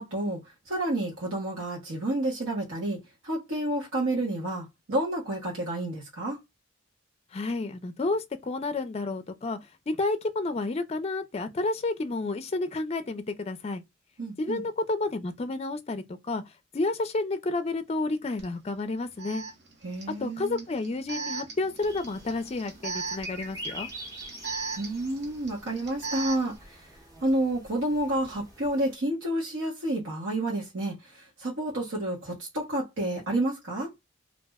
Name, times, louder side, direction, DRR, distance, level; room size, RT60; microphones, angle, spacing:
voice 1, 0.0-3.0 3.2-6.4 14.2-14.6 19.8-20.7 24.7-26.9 27.2-33.9, right 1 dB, 85° right, 1.0 m, -30 dB
voice 2, 7.3-9.6 9.9-13.8 14.4-16.4 16.7-19.4 20.2-23.9, left 2 dB, 30° left, 0.4 m, -30 dB
Alarm, 18.4-18.5 19.2-26.6, right 4 dB, 60° right, 0.8 m, -38 dB
sound 1, 21.8-28.9, equal, 20° right, 0.8 m, -45 dB
2.5 x 2.1 x 3.4 m
head